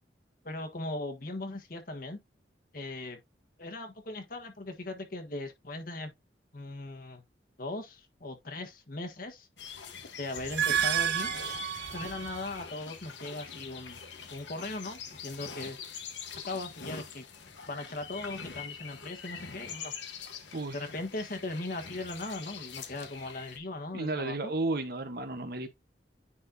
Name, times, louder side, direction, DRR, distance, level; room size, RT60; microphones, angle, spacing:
voice 1, 0.4-2.2 2.7-3.2 3.6-6.1 6.5-7.2 7.6-9.5 10.2-11.3 11.9-14.0 14.3-15.8 16.4-17.2 17.7-19.9 20.7-24.5, left 2 dB, 50° left, 1.4 m, -39 dB
sound 1, 9.6-23.6, left 6 dB, 90° left, 1.4 m, -44 dB
sound 2, 10.4-12.6, right 9 dB, 80° right, 0.8 m, -31 dB
voice 2, 20.5-20.8 23.9-25.7, right 2 dB, 55° right, 1.2 m, -33 dB
9.8 x 4.3 x 2.8 m
head